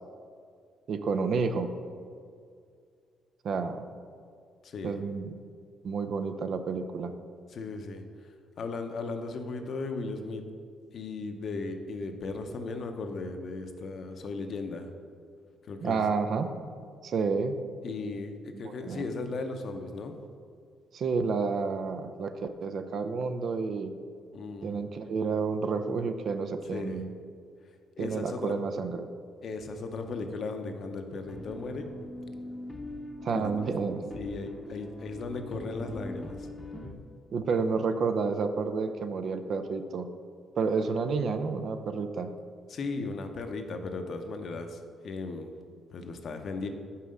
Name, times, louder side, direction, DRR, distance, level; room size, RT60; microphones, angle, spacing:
voice 1, 0.9-1.7 3.4-3.8 4.8-5.3 5.8-7.1 15.8-16.5 17.0-17.5 18.5-19.0 20.9-23.9 24.6-27.1 28.0-29.1 33.2-34.0 37.3-40.1 40.6-42.3, right 5 dB, 60° right, 8 dB, 0.5 m, -30 dB
voice 2, 4.6-5.0 7.5-8.0 8.6-10.4 10.9-14.9 15.7-16.0 17.8-20.2 24.3-24.8 26.7-27.0 28.0-28.6 29.4-31.9 33.3-33.5 34.1-36.5 42.7-46.7, left 3 dB, 60° left, 6 dB, 0.7 m, -36 dB
sound 1, 31.3-36.9, left 1 dB, 15° left, 0.8 m, -42 dB
5.6 x 4.8 x 6.4 m, 2.2 s
cardioid pair, 90°, 0 cm